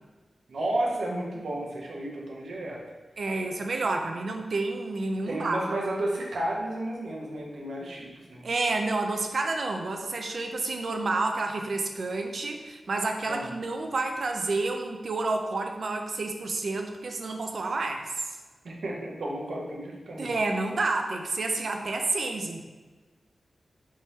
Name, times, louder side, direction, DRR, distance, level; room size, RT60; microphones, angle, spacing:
voice 1, 0.5-2.8 5.3-8.4 13.3-13.5 18.6-20.3, right 1 dB, 85° right, -2 dB, 0.7 m, -32 dB
voice 2, 3.2-5.6 8.4-18.4 20.2-22.6, right 3 dB, 60° right, 4 dB, 0.4 m, -29 dB
3.5 x 3.1 x 2.7 m, 1.3 s
wide cardioid pair, 125°, 0 cm